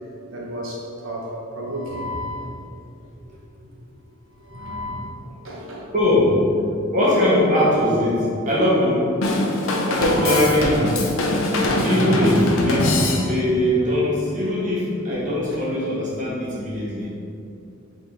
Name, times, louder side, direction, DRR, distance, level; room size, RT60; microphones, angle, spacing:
voice 1, 0.3-1.3 1.5-2.5 3.3-3.4 4.4-5.0 5.4-5.8 9.5-10.5 13.1-13.2 15.1-15.2 15.5-15.6, left 1 dB, 80° right, -2 dB, 0.9 m, -32 dB
voice 2, 5.9-6.4 6.9-9.1 9.9-11.1 11.4-17.1, left 1 dB, 40° right, -7 dB, 1.1 m, -21 dB
Drum kit / Drum, 9.2-13.6, left 1 dB, 80° left, 0.5 m, -22 dB
3.8 x 3.8 x 3.3 m, 2.6 s
head